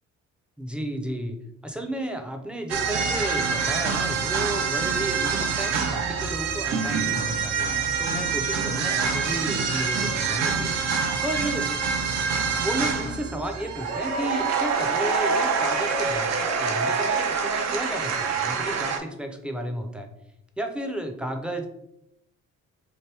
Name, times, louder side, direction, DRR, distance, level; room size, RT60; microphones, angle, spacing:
voice 1, 0.6-1.4 1.6-10.7 11.2-11.7 12.6-20.1 20.6-21.7, right 1 dB, 5° right, 4 dB, 0.5 m, -32 dB
sound 1, 2.7-19.0, right 5 dB, 60° right, 0.5 m, -26 dB
2.9 x 2.6 x 3.3 m, 0.80 s
cardioid pair, 90°, 30 cm